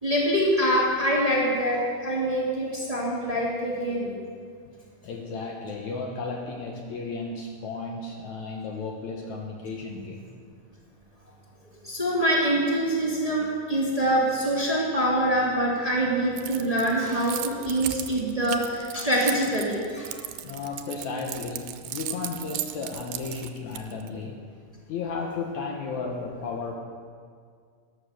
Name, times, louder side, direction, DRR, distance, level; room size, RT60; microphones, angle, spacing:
voice 1, 0.0-4.1 11.8-20.2, right 1 dB, 10° right, -5 dB, 2.1 m, -25 dB
voice 2, 5.0-10.3 20.4-24.4 24.9-26.7, left 4 dB, 70° left, 1 dB, 2.2 m, -34 dB
Keys jangling, 16.4-24.1, right 13 dB, 90° right, 2.4 m, -36 dB
13.0 x 11.5 x 6.6 m, 2.1 s
omnidirectional pair, 3.9 m